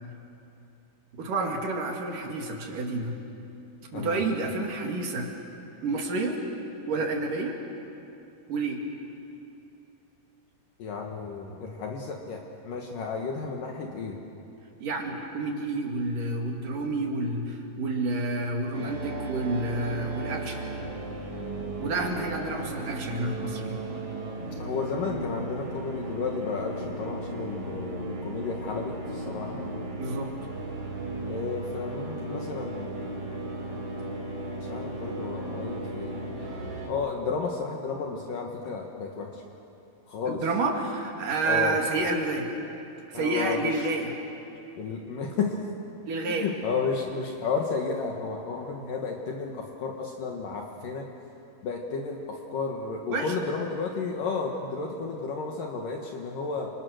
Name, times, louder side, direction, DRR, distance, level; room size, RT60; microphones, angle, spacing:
voice 1, 1.2-3.2 3.9-5.3 5.8-6.4 6.9-7.5 8.5-8.8 14.8-20.7 21.8-23.8 29.9-30.3 40.3-42.5 43.1-44.1 46.1-46.5 53.1-53.3, right 2 dB, 60° right, 1 dB, 3.8 m, -29 dB
voice 2, 10.8-14.2 24.6-29.8 31.2-33.1 34.6-39.4 40.1-40.4 41.5-41.8 43.1-43.7 44.8-45.6 46.4-51.1 51.6-56.7, left 4 dB, 65° left, 1 dB, 3.0 m, -32 dB
sound 1, 18.7-36.9, right 2 dB, 35° right, 4.9 m, -35 dB
30.0 x 27.5 x 6.5 m, 2.8 s
omnidirectional pair, 4.4 m